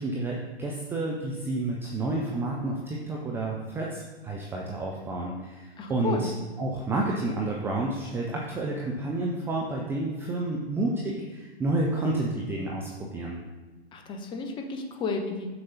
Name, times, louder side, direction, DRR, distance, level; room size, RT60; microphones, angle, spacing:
voice 1, 0.0-6.3 6.6-13.4, right 2 dB, 5° right, -2 dB, 0.5 m, -30 dB
voice 2, 5.8-6.3 13.9-15.5, left 4 dB, 15° left, 4 dB, 0.8 m, -32 dB
6.9 x 6.8 x 4.1 m, 1.2 s
figure-of-eight pair, 120°, 32 cm